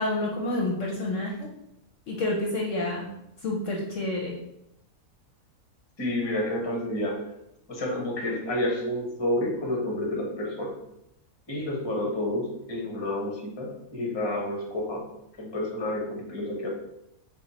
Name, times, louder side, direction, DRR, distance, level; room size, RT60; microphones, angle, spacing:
voice 1, 0.0-1.5 2.1-3.1 3.4-4.4, left 2 dB, 65° left, -2 dB, 0.9 m, -28 dB
voice 2, 6.0-7.2 7.7-10.7 11.5-15.0 15.4-16.7, left 1 dB, 25° left, -1 dB, 0.6 m, -29 dB
4.5 x 2.3 x 4.0 m, 0.82 s
omnidirectional pair, 1.6 m